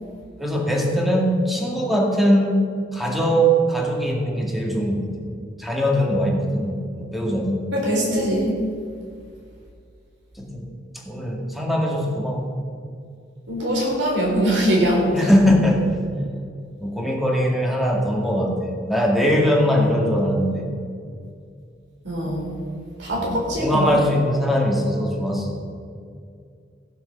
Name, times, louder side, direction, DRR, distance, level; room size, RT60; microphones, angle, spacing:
voice 1, 0.4-2.6 2.9-5.1 5.6-7.7 10.4-10.7 11.0-12.5 15.1-16.0 16.8-20.7 23.2-25.6, equal, ahead, 0 dB, 2.0 m, -21 dB
voice 2, 7.7-8.5 13.5-15.2 22.0-22.6 23.0-23.9, equal, 75° right, -2 dB, 4.2 m, -22 dB
15.0 x 7.7 x 6.7 m, 2.3 s
head